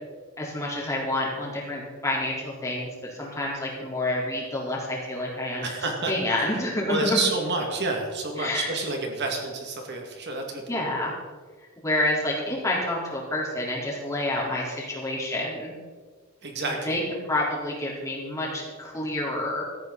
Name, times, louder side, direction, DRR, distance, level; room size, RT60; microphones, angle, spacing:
voice 1, 0.4-5.7 6.1-7.2 8.4-8.7 10.7-11.1 11.8-15.7 16.6-19.6, left 1 dB, 15° left, -4 dB, 4.1 m, -28 dB
voice 2, 5.6-6.5 6.9-10.8 16.4-17.0, right 3 dB, 55° right, 1 dB, 2.3 m, -29 dB
17.0 x 14.0 x 4.1 m, 1.5 s
head